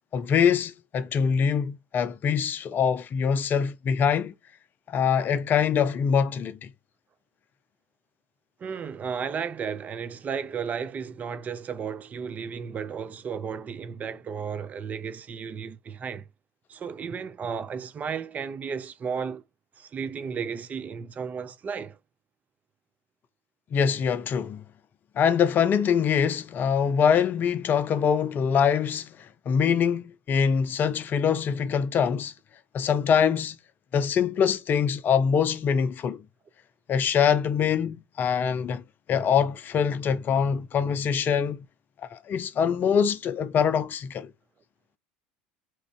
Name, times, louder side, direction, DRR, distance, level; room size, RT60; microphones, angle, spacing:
voice 1, 0.1-4.3 4.9-6.7 23.7-24.6 25.2-32.3 32.7-33.6 33.9-36.2 36.9-38.8 39.1-41.7 42.1-44.3, left 7 dB, 40° left, 0.5 m, -24 dB
voice 2, 8.6-16.2 16.7-19.4 19.8-22.0, right 6 dB, 30° right, 0.4 m, -34 dB
3.0 x 2.5 x 3.2 m
hypercardioid pair, 80°, 5 cm